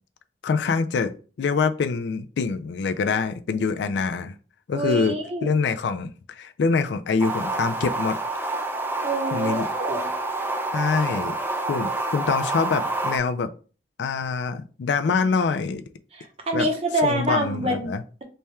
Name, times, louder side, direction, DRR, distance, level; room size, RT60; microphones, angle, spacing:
voice 1, 0.4-1.1 1.4-4.4 4.7-5.1 5.4-8.2 9.3-9.7 10.7-11.4 11.7-13.5 14.0-15.8 16.5-16.7 17.0-18.0, left 5 dB, 70° left, 10 dB, 0.3 m, -25 dB
voice 2, 4.7-5.5 9.0-10.1 16.1-17.9, right 1 dB, 35° right, 3 dB, 0.7 m, -26 dB
sound 1, 7.2-13.2, right 2 dB, 10° right, 0.3 m, -28 dB
3.3 x 2.3 x 4.2 m, 0.37 s
head